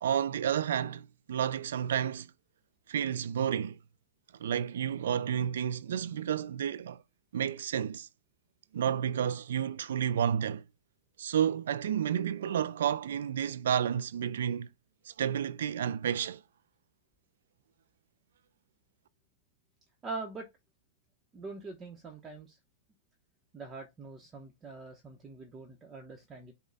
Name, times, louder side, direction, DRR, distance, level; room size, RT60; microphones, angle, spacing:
voice 1, 0.0-2.3 2.9-3.8 4.4-7.0 7.3-8.1 8.7-10.6 11.2-14.7 15.1-16.4, right 9 dB, 85° right, 0.4 m, -31 dB
voice 2, 20.0-20.5 21.3-22.6 23.5-26.5, right 3 dB, 20° right, 0.9 m, -43 dB
5.3 x 2.2 x 3.9 m
hypercardioid pair, 135°, 0 cm